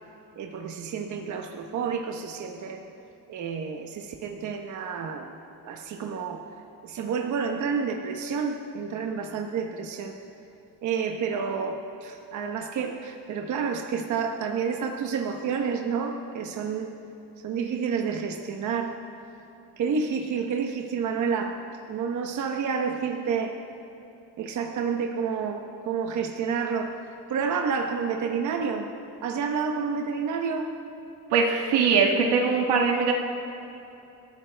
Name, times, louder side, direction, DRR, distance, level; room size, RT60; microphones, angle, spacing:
voice 1, 0.4-2.9 3.3-5.4 5.6-6.4 6.8-10.1 10.8-16.9 17.4-19.1 19.8-23.5 24.4-27.0 27.3-28.9 29.2-30.7, right 6 dB, 45° right, 3 dB, 1.0 m, -29 dB
voice 2, 31.3-33.1, right 5 dB, 90° right, 1 dB, 1.6 m, -21 dB
30.0 x 13.5 x 3.4 m, 2.8 s
cardioid pair, 175°, 40 cm